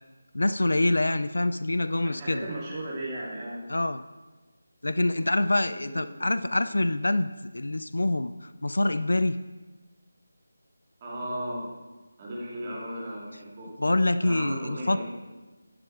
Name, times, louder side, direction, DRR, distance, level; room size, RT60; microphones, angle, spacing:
voice 1, 0.3-2.5 3.7-4.0 4.8-7.3 7.5-9.4 13.8-15.0, left 2 dB, 65° left, 13 dB, 0.4 m, -25 dB
voice 2, 2.0-3.7 5.2-5.3 5.8-6.7 11.0-11.7 12.2-13.8 14.2-15.0, right 1 dB, 25° right, -5 dB, 2.6 m, -36 dB
10.5 x 7.6 x 4.6 m, 1.2 s
figure-of-eight pair, 160°, 0 cm